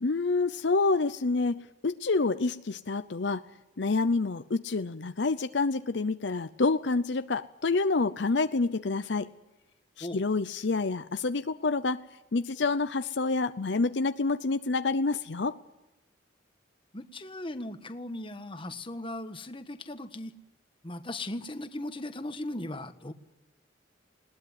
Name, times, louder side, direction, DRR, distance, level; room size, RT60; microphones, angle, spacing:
voice 1, 0.0-3.4 3.8-9.3 10.0-12.0 12.3-15.6, left 3 dB, 65° left, 11 dB, 0.7 m, -28 dB
voice 2, 16.9-20.3 20.8-23.1, left 1 dB, 30° left, 9 dB, 1.4 m, -38 dB
20.5 x 18.5 x 9.6 m, 0.99 s
head